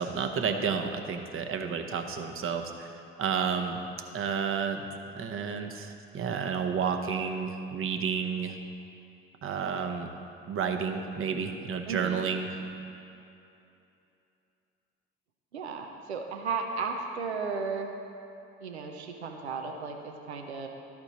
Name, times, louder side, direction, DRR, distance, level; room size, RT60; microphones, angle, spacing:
voice 1, 0.0-3.8 4.1-4.9 5.1-8.6 9.4-10.1 10.5-12.5, right 6 dB, 40° right, 6 dB, 0.8 m, -31 dB
voice 2, 11.9-12.2 15.5-17.9 18.6-20.7, right 5 dB, 90° right, 3 dB, 0.6 m, -34 dB
12.5 x 4.4 x 4.1 m, 2.8 s
hypercardioid pair, 55°, 32 cm